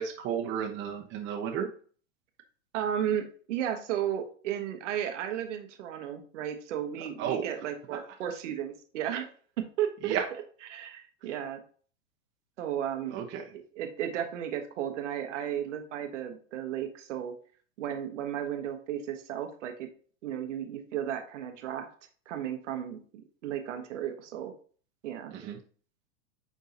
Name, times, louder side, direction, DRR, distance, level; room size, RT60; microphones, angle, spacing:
voice 1, 0.0-1.7 7.2-7.5 10.0-10.2 13.1-13.4 25.3-25.6, right 8 dB, 30° right, 0 dB, 1.0 m, -32 dB
voice 2, 2.7-9.3 9.6-10.2 10.6-11.6 12.6-13.2 13.7-17.3 17.8-19.9 20.2-21.9 22.3-24.5 25.0-25.3, right 10 dB, 70° right, 6 dB, 1.2 m, -34 dB
9.2 x 3.7 x 2.8 m, 0.44 s
hypercardioid pair, 115°, 38 cm